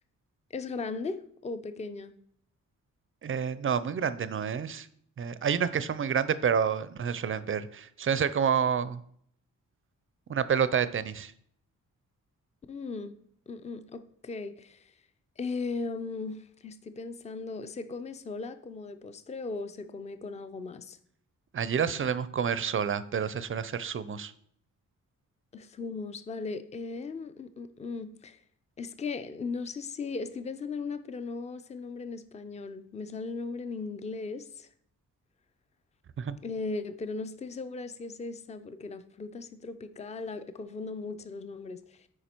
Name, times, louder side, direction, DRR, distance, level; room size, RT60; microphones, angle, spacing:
voice 1, 0.5-2.1 12.7-13.1 13.5-14.9 15.4-21.0 25.5-28.4 28.8-34.7 36.4-42.1, left 4 dB, 20° left, 11 dB, 0.4 m, -37 dB
voice 2, 3.2-4.9 5.2-9.0 10.3-11.3 21.5-24.3 36.2-36.4, right 7 dB, 40° right, 15 dB, 0.4 m, -29 dB
9.3 x 4.9 x 4.4 m, 0.65 s
wide cardioid pair, 150°, 32 cm